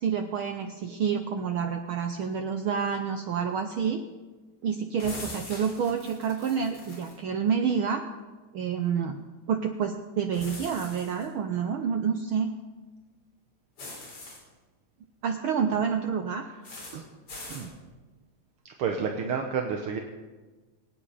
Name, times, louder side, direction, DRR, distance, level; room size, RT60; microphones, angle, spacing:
voice 1, 0.0-4.0 4.6-8.0 8.5-9.2 9.5-12.5 15.2-16.4, right 7 dB, 85° right, 5 dB, 1.1 m, -28 dB
sound 1, 5.0-7.2 10.3-11.3 13.8-14.4 16.6-17.0 17.3-17.7, left 2 dB, 50° left, 4.8 m, -42 dB
voice 2, 18.6-20.0, right 6 dB, 65° right, 3 dB, 1.5 m, -30 dB
23.0 x 9.0 x 5.0 m, 1.3 s
omnidirectional pair, 3.4 m